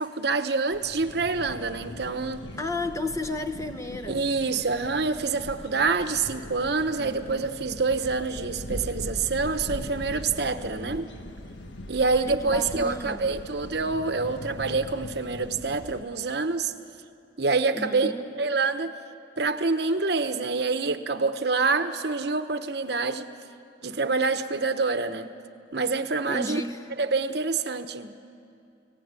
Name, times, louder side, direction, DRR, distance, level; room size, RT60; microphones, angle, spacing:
voice 1, 0.0-2.4 4.1-11.1 11.9-16.7 17.4-18.9 19.4-23.3 23.8-25.3 25.7-26.6 27.0-28.1, right 4 dB, 60° right, 9 dB, 1.0 m, -26 dB
sound 1, 0.7-16.0, left 1 dB, 75° left, 1.5 m, -40 dB
voice 2, 2.6-4.3 7.0-7.5 10.7-11.1 12.0-13.3 17.7-18.2 26.3-26.8, left 2 dB, 15° left, 8 dB, 1.1 m, -33 dB
30.0 x 18.0 x 9.7 m, 2.5 s
head